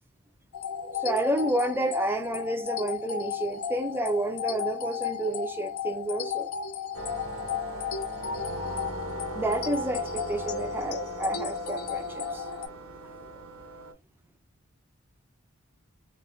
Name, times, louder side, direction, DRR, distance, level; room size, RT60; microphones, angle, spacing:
sound 1, 0.5-12.7, left 7 dB, 75° left, 0.4 m, -34 dB
voice 1, 0.9-6.5 9.3-12.5, right 1 dB, 10° right, 0.3 m, -30 dB
sound 2, 6.9-13.9, right 1 dB, 70° right, 0.6 m, -39 dB
2.2 x 2.1 x 3.6 m
head